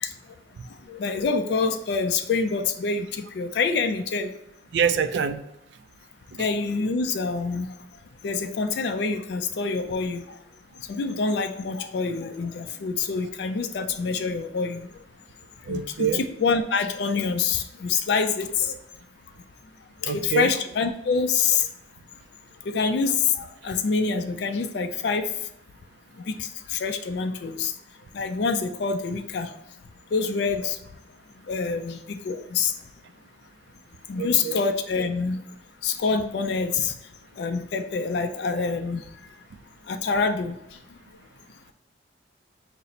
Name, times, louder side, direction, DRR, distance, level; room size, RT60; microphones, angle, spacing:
voice 1, 0.9-4.3 6.4-7.7 8.2-10.4 10.9-14.9 15.7-18.8 20.0-21.7 22.7-25.3 26.3-27.7 28.1-29.5 30.1-30.8 31.5-32.7 34.1-35.4 35.8-36.9 37.4-39.0 39.9-40.6, left 5 dB, 60° left, 7 dB, 0.3 m, -26 dB
voice 2, 4.7-5.4 15.7-16.3 20.0-20.5 34.2-34.6, right 7 dB, 65° right, 9 dB, 0.3 m, -25 dB
4.0 x 2.0 x 4.1 m, 0.83 s
head